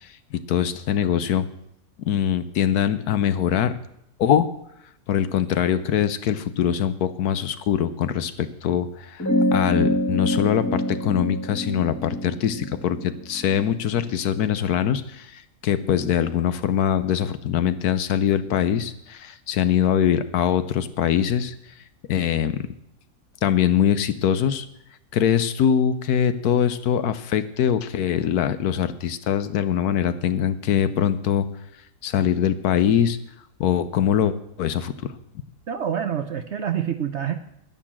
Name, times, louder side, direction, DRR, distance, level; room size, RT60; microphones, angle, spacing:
voice 1, 0.3-1.5 2.1-3.8 4.2-4.5 5.1-21.5 22.1-22.7 23.4-24.7 25.1-31.5 32.0-33.2 33.6-35.1, left 9 dB, 70° left, 13 dB, 1.2 m, -23 dB
sound 1, 9.2-14.0, equal, 10° left, 1.5 m, -26 dB
voice 2, 35.7-37.4, right 9 dB, 60° right, 10 dB, 0.8 m, -27 dB
11.0 x 10.0 x 7.4 m, 0.77 s
omnidirectional pair, 1.7 m